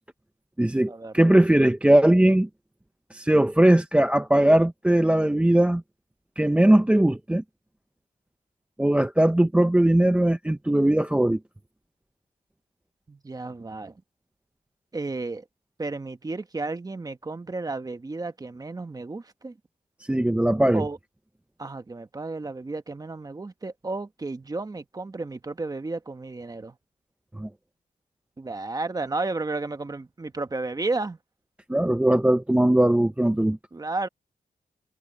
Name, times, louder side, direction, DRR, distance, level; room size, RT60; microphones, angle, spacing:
voice 1, 0.6-2.5 3.1-5.8 6.4-7.4 8.8-11.4 20.1-20.8 27.3-27.5 31.7-33.6, right 1 dB, 5° right, 0.6 m, -20 dB
voice 2, 13.1-13.9 14.9-15.4 15.8-19.6 20.7-21.0 21.6-26.7 28.4-31.2 33.7-34.1, right 3 dB, 25° right, 1.2 m, -32 dB
wide cardioid pair, 135°, 16 cm